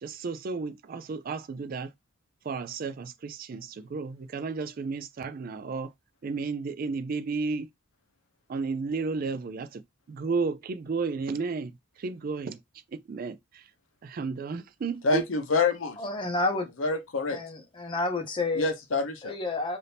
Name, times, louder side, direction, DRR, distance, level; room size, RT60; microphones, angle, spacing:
voice 1, 0.0-1.9 2.4-5.9 6.2-7.7 8.5-9.8 10.1-11.7 12.0-12.6 12.9-13.7 14.0-15.3, right 4 dB, 40° right, 0.3 m, -33 dB
voice 2, 15.0-16.0 16.8-17.4 18.6-19.3, left 3 dB, 65° left, 0.7 m, -26 dB
voice 3, 16.0-16.7 17.3-18.7 19.2-19.8, left 2 dB, 25° left, 0.6 m, -30 dB
3.4 x 2.6 x 2.8 m
head